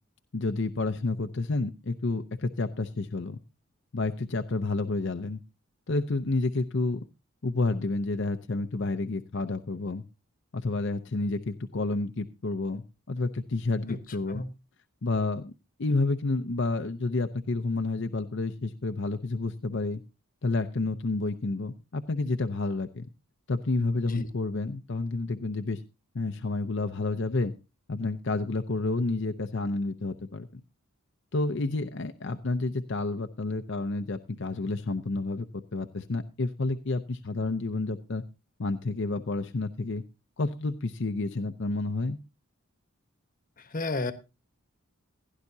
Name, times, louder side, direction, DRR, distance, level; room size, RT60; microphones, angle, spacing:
voice 1, 0.3-3.4 3.9-5.4 5.9-7.0 7.4-10.0 10.5-14.4 15.0-15.5 15.8-20.0 20.4-23.1 23.5-25.8 26.1-27.5 27.9-30.6 31.3-38.2 38.6-40.0 40.4-42.2, left 3 dB, 55° left, 0.6 m, -30 dB
voice 2, 43.6-44.1, left 2 dB, 40° left, 1.1 m, -32 dB
16.5 x 11.0 x 2.7 m
head